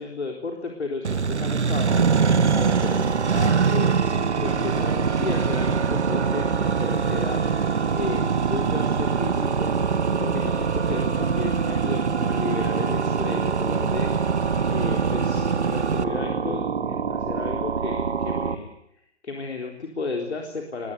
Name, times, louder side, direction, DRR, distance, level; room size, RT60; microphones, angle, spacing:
voice 1, 0.0-4.0 4.4-7.4 7.9-9.7 10.2-14.1 14.6-20.9, left 4 dB, 70° left, 1 dB, 4.0 m, -33 dB
Accelerating revving vroom, 1.0-16.0, right 5 dB, 80° right, 1.3 m, -25 dB
sound 1, 1.8-18.6, right 6 dB, 60° right, 2.4 m, -27 dB
21.5 x 19.5 x 8.2 m, 0.75 s
figure-of-eight pair, 135°, 34 cm